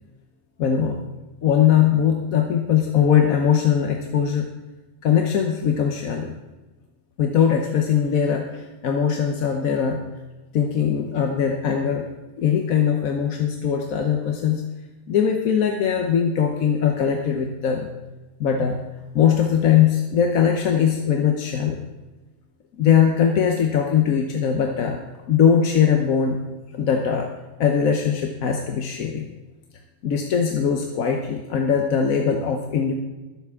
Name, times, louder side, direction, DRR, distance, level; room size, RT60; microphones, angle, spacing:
voice 1, 0.6-1.0 1.4-4.5 5.0-6.3 7.2-10.0 10.5-12.1 12.4-14.6 15.1-17.9 18.4-18.8 19.1-21.8 22.8-25.0 25.3-26.4 26.7-27.3 27.6-29.3 30.0-32.9, left 8 dB, 70° left, 3 dB, 1.3 m, -20 dB
21.0 x 7.8 x 3.6 m, 1.2 s
omnidirectional pair, 1.5 m